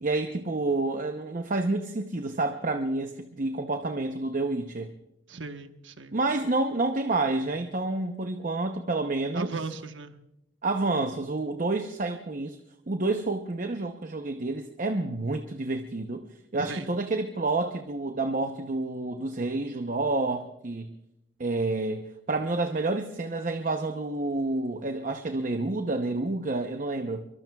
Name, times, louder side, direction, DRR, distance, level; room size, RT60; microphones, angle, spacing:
voice 1, 0.0-4.9 6.1-9.5 10.6-12.6 12.9-21.0 21.4-27.2, right 2 dB, 45° right, 6 dB, 0.7 m, -29 dB
voice 2, 5.3-6.2 9.3-10.2 16.6-16.9, right 3 dB, 90° right, 7 dB, 1.1 m, -37 dB
24.5 x 23.5 x 2.3 m, 0.81 s
head